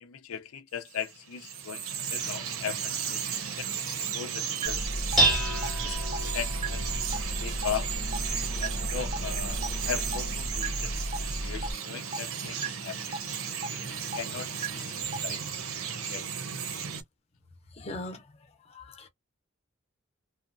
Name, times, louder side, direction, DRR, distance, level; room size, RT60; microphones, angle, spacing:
voice 1, 0.0-3.2 3.6-3.7 4.1-4.9 5.1-5.4 5.8-6.8 7.1-7.9 8.6-9.6 9.9-10.9 11.2-13.2 13.7-15.4 16.1-16.3, left 8 dB, 90° left, 0.5 m, -38 dB
Bird vocalization bird call bird song, 0.9-17.0, right 7 dB, 90° right, 0.6 m, -35 dB
sound 1, 4.6-4.7 5.1-5.2 5.6-5.7 6.1-6.2 6.6-6.7 7.1-7.2 7.6-7.7 8.1-8.2 8.6-8.7 9.1-9.2 9.6-9.7 10.1-10.2 10.6-10.7 11.1-11.2 11.6-11.7 12.1-12.2 12.6-12.7 13.1-13.2 13.6-13.7 14.1-14.2 14.6-14.7 15.1-15.2, right 4 dB, 30° right, 0.4 m, -32 dB
Dishes pots and pans, 4.7-11.7, right 1 dB, ahead, 0.8 m, -31 dB
voice 2, 17.7-19.1, left 2 dB, 30° left, 0.6 m, -41 dB
2.7 x 2.1 x 2.5 m
head